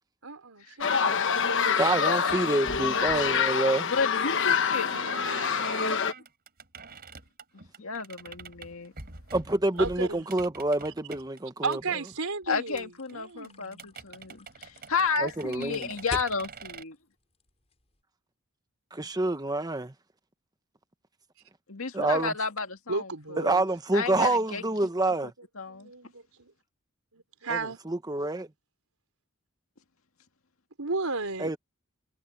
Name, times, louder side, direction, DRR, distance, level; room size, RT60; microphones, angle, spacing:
voice 1, 0.2-1.4 9.8-10.3 11.6-13.9 22.9-23.7 25.7-26.5 27.1-27.8 30.8-31.6, right 4 dB, 90° right, 4.2 m, -34 dB
sound 1, 0.8-6.1, left 6 dB, 60° left, 1.2 m, -26 dB
voice 2, 1.0-1.5 3.9-5.0 7.8-8.9 12.5-17.0 21.7-23.5 23.9-24.6 25.0-25.1 25.6-25.9, left 4 dB, 75° left, 2.1 m, -32 dB
voice 3, 1.7-3.9 9.3-11.8 15.2-15.9 18.9-19.9 21.9-22.3 23.4-25.3 27.5-28.5 31.4-31.6, right 2 dB, 20° right, 1.1 m, -27 dB
sound 2, 2.3-11.4 11.7-11.8 12.1-12.2 12.4-12.5 12.8-12.9 13.1-13.2 13.4-13.5 13.7-16.8, right 4 dB, 45° right, 4.3 m, -45 dB
sound 3, 12.7-18.0, left 2 dB, 30° left, 5.1 m, -46 dB
head